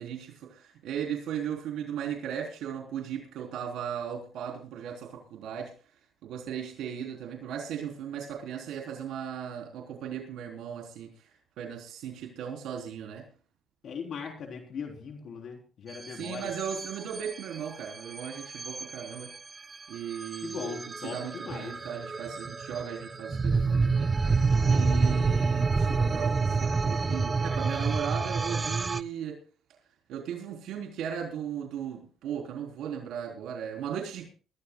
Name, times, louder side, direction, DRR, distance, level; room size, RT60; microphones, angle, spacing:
voice 1, 0.0-5.7 6.2-11.1 11.6-13.2 16.1-19.3 19.9-24.4 24.7-29.4 30.1-34.3, right 8 dB, 85° right, 3.6 m, -37 dB
voice 2, 13.8-16.5 20.4-21.8 24.5-25.5, left 6 dB, 65° left, 3.7 m, -40 dB
sound 1, 15.9-29.0, right 4 dB, 30° right, 0.6 m, -28 dB
23.5 x 14.0 x 2.3 m
cardioid pair, 90°, 0 cm